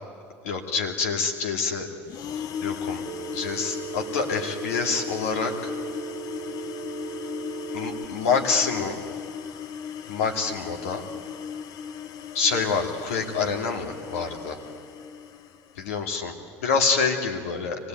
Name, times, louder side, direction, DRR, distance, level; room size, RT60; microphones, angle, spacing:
voice 1, 0.4-1.9 2.3-3.0 3.3-5.7 7.7-9.0 10.1-11.0 12.3-14.6 15.8-17.9, left 5 dB, 85° left, 3 dB, 2.6 m, -27 dB
sound 1, 2.1-16.0, left 8 dB, 55° left, 1.0 m, -37 dB
Telephone, 3.1-8.1, right 8 dB, 40° right, 1.4 m, -37 dB
25.5 x 18.5 x 9.3 m, 2.3 s
hypercardioid pair, 80°, 7 cm